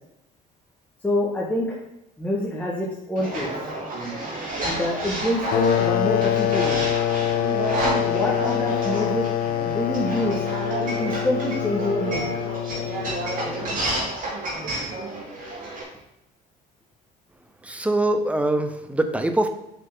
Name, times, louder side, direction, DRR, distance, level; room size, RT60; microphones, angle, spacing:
voice 1, 1.0-1.8 2.2-3.5 4.6-6.8 8.1-9.2 9.6-10.4 10.8-12.3, left 1 dB, 10° left, -5 dB, 1.6 m, -26 dB
sound 1, 3.2-15.8, right 2 dB, 55° right, 2.9 m, -30 dB
sound 2, 5.5-13.9, left 11 dB, 60° left, 0.5 m, -25 dB
voice 2, 17.6-19.5, right 1 dB, 10° right, 7 dB, 0.7 m, -23 dB
7.6 x 5.7 x 3.7 m, 0.83 s
cardioid pair, 110°, 17 cm